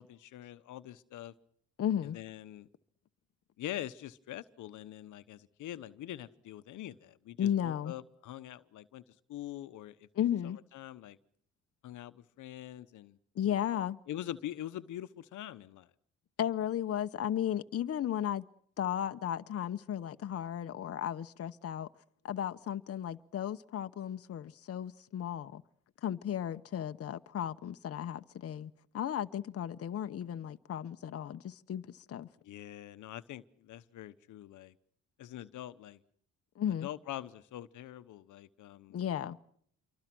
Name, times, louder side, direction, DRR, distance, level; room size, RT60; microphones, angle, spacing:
voice 1, 0.0-1.3 2.0-2.7 3.6-9.0 9.3-10.1 10.4-11.2 11.8-13.2 14.1-15.9 32.4-34.7 35.2-36.0 36.8-39.0, left 13 dB, 80° left, 1.0 m, -44 dB
voice 2, 1.8-2.2 7.4-7.9 10.2-10.6 13.4-14.0 16.4-18.5 18.8-21.9 22.2-25.6 26.0-32.3 36.6-36.9 38.9-39.4, left 10 dB, 50° left, 0.9 m, -34 dB
27.5 x 23.5 x 6.1 m
cardioid pair, 90°, 30 cm